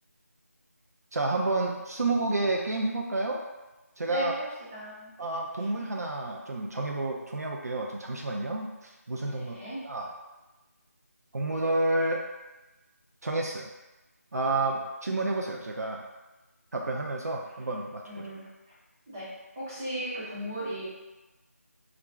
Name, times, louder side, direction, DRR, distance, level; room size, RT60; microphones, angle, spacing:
voice 1, 1.1-3.4 4.0-4.3 5.2-9.5 9.8-10.1 11.3-12.2 13.2-13.7 14.3-16.1 16.7-18.0, right 2 dB, 75° right, 0 dB, 0.4 m, -30 dB
voice 2, 4.1-5.1 5.6-5.7 9.3-9.8 18.0-18.7 19.1-20.9, right 1 dB, 10° right, -9 dB, 0.4 m, -37 dB
2.4 x 2.1 x 3.2 m, 1.1 s
figure-of-eight pair, 165°, 9 cm